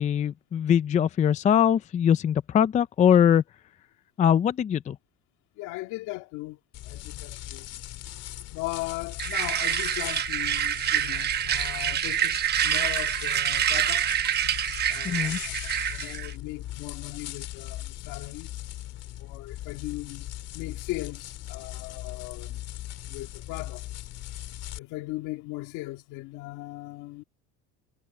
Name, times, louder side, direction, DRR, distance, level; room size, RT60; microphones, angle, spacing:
voice 1, 0.0-3.4 4.2-5.0 15.0-15.4, left 9 dB, 25° left, 0.5 m, -22 dB
voice 2, 5.6-7.7 8.5-14.1 14.9-18.5 19.2-22.6 23.1-23.9 24.7-27.2, left 20 dB, 70° left, 2.0 m, -38 dB
sound 1, 6.7-24.8, left 14 dB, 55° left, 2.0 m, -39 dB
sound 2, 9.2-16.3, right 10 dB, 30° right, 1.0 m, -27 dB
cardioid pair, 135°, 31 cm